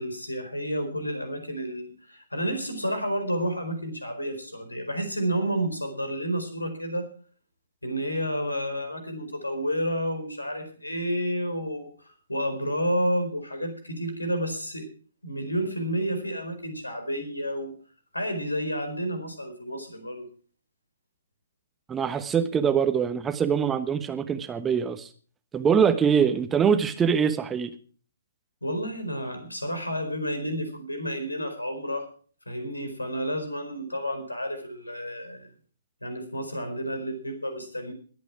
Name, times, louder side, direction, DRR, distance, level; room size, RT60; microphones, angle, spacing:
voice 1, 0.0-7.1 7.8-14.9 15.2-17.7 18.1-20.3 28.6-32.1 32.5-35.5 36.0-37.9, equal, 85° left, 8 dB, 4.6 m, -30 dB
voice 2, 21.9-25.1 25.5-27.7, right 7 dB, 10° right, 10 dB, 1.1 m, -23 dB
21.5 x 8.6 x 4.8 m, 0.42 s
figure-of-eight pair, 125°, 0 cm